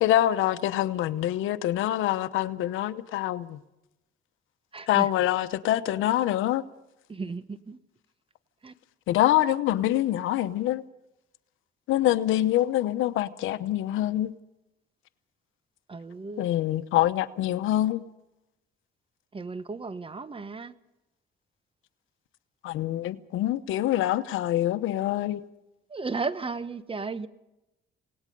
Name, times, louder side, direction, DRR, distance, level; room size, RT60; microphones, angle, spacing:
voice 1, 0.0-3.6 4.9-6.6 9.1-10.8 11.9-14.3 16.4-18.0 22.6-25.4, left 13 dB, 90° left, 0.9 m, -25 dB
voice 2, 4.7-5.1 7.1-7.8 8.6-8.7 15.9-16.5 19.3-20.7 25.9-27.3, right 4 dB, 25° right, 1.2 m, -34 dB
28.5 x 18.5 x 5.4 m
cardioid pair, 90°, 20 cm